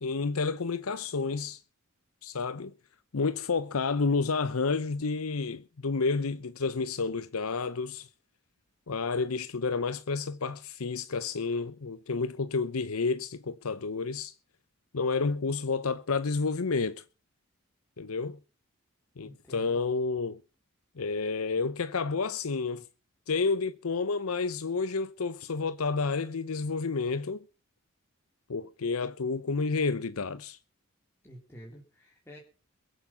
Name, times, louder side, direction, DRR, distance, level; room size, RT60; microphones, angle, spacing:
voice 1, 0.0-1.6 2.2-2.7 3.1-8.1 8.9-14.3 14.9-17.0 18.0-18.4 19.2-20.4 21.0-22.8 23.3-27.4 28.5-30.6, left 4 dB, 90° left, 0.7 m, -30 dB
voice 2, 19.2-19.8 31.2-32.4, equal, 10° left, 3.2 m, -49 dB
22.0 x 8.0 x 5.7 m
head